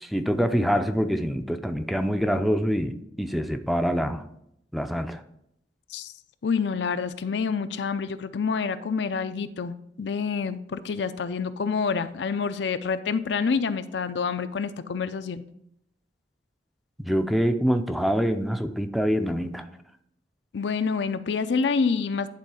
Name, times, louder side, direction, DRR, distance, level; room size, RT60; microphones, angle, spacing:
voice 1, 0.0-4.2 4.7-5.2 17.0-19.6, equal, ahead, 7 dB, 0.4 m, -25 dB
voice 2, 6.4-15.4 20.5-22.3, left 5 dB, 75° left, 11 dB, 0.5 m, -27 dB
10.5 x 3.8 x 4.8 m, 0.76 s
head